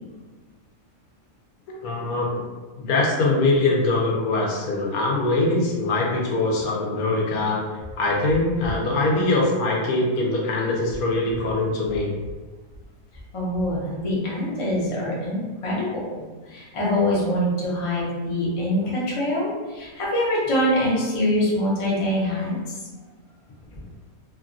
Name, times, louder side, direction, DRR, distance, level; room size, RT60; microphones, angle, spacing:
voice 1, 1.7-2.5 2.8-7.6 8.0-12.1, left 2 dB, 85° left, -2 dB, 1.1 m, -22 dB
voice 2, 13.3-22.6, left 1 dB, 30° left, -6 dB, 0.6 m, -24 dB
3.0 x 2.3 x 2.5 m, 1.3 s
omnidirectional pair, 1.5 m